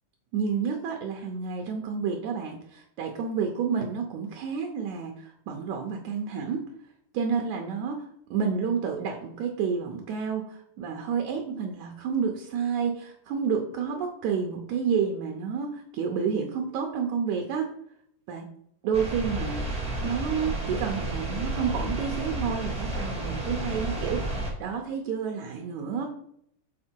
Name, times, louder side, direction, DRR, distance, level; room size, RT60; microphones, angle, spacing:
voice 1, 0.3-6.7 7.1-17.7 18.3-18.5 18.8-24.2 24.6-26.1, right 6 dB, 75° right, 3 dB, 1.9 m, -30 dB
sound 1, 18.9-24.5, right 1 dB, 5° right, 0.6 m, -31 dB
7.5 x 4.4 x 4.4 m, 0.71 s
omnidirectional pair, 3.9 m